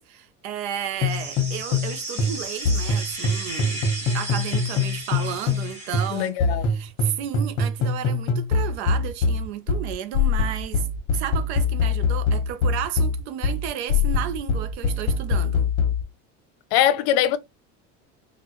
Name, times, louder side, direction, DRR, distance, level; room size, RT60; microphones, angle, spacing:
voice 1, 0.0-6.3 6.7-15.7, right 10 dB, 90° right, 0.7 m, -33 dB
sound 1, 1.0-1.9 2.2-5.7 5.9-16.0, left 4 dB, 50° left, 1.2 m, -23 dB
sound 2, 1.1-6.3, right 2 dB, 20° right, 1.2 m, -35 dB
voice 2, 6.1-6.7 16.7-17.4, left 11 dB, 75° left, 0.7 m, -21 dB
3.7 x 2.4 x 3.0 m
cardioid pair, 145°, 32 cm